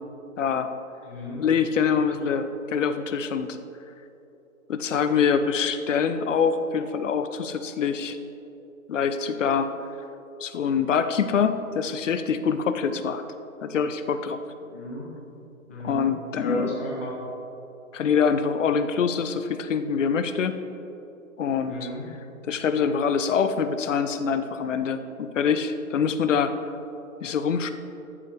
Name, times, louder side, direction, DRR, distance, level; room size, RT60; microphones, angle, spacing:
voice 1, 0.4-0.7 1.4-3.6 4.7-8.2 8.9-9.7 10.4-13.2 13.6-14.4 15.8-16.8 17.9-20.6 21.4-21.9 22.4-26.5 27.2-27.7, left 6 dB, 60° left, 10 dB, 0.7 m, -25 dB
voice 2, 1.0-1.4 14.6-15.1 15.7-16.1 16.3-17.1 21.7-22.1, left 1 dB, 10° left, -6 dB, 0.5 m, -33 dB
13.5 x 7.3 x 3.3 m, 2.9 s
hypercardioid pair, 155°, 43 cm